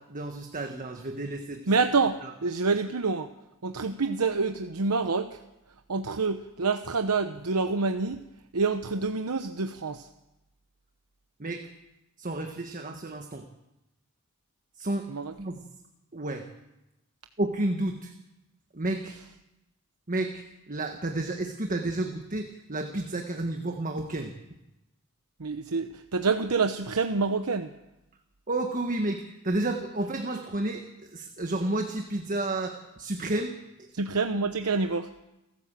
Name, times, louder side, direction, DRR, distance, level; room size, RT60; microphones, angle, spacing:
voice 1, 0.0-1.6 2.2-2.3 11.4-11.7 12.2-13.4 14.8-15.1 15.4-15.6 16.1-16.5 17.4-18.1 18.7-19.2 20.1-24.3 28.5-33.9, right 2 dB, 35° right, 5 dB, 1.5 m, -31 dB
voice 2, 1.7-3.3 3.6-5.4 5.9-8.2 8.5-10.1 15.1-15.3 25.4-27.7 33.9-35.1, right 4 dB, 85° right, 7 dB, 0.9 m, -27 dB
30.0 x 13.0 x 7.5 m, 0.95 s
head